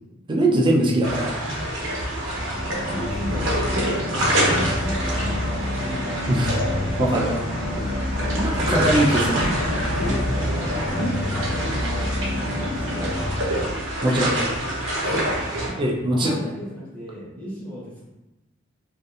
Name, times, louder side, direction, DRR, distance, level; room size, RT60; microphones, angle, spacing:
voice 1, 0.3-1.3 6.3-6.6 7.0-7.4 7.8-7.9 8.4-9.5 11.6-11.8 14.0-14.3 15.8-16.4, right 1 dB, 25° right, -1 dB, 0.4 m, -21 dB
sound 1, 1.0-15.7, right 1 dB, 70° right, 0.8 m, -27 dB
sound 2, 2.2-14.1, left 1 dB, 65° left, 0.5 m, -28 dB
voice 2, 2.3-6.1 7.4-7.7 8.2-8.9 9.7-11.5 11.9-14.0 15.1-18.1, left 1 dB, 10° left, -7 dB, 0.8 m, -37 dB
2.7 x 2.4 x 2.3 m, 1.0 s
head